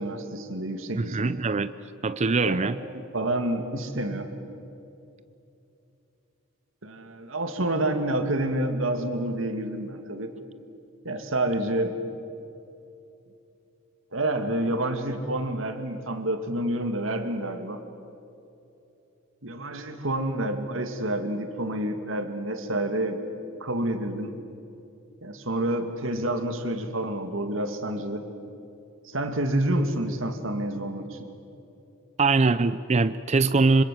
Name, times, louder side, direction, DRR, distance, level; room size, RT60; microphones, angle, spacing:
voice 1, 0.0-1.3 2.4-2.7 3.1-4.3 6.8-10.3 11.0-11.9 14.1-17.8 19.4-23.2 23.6-24.4 25.2-28.2 29.0-31.2, right 1 dB, 70° right, 7 dB, 2.5 m, -28 dB
voice 2, 1.0-1.7 2.0-2.8 32.2-33.8, right 3 dB, 35° right, 14 dB, 0.5 m, -22 dB
26.0 x 26.0 x 7.7 m, 2.8 s
head